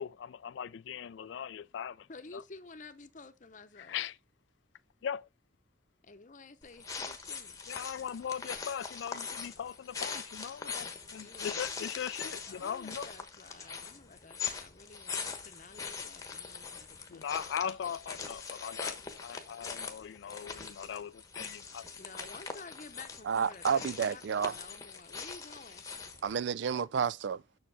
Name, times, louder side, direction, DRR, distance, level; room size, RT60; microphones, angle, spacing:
voice 1, 0.0-2.4 3.8-4.2 5.0-5.3 7.7-13.1 17.1-21.9, left 8 dB, 65° left, 0.3 m, -39 dB
voice 2, 2.1-4.0 6.0-7.6 11.2-17.2 22.0-25.9, left 3 dB, 40° left, 0.8 m, -52 dB
sound 1, 6.6-26.3, left 5 dB, 15° left, 1.0 m, -42 dB
voice 3, 23.3-24.5 26.2-27.4, right 7 dB, 65° right, 0.4 m, -30 dB
7.0 x 6.4 x 3.3 m
head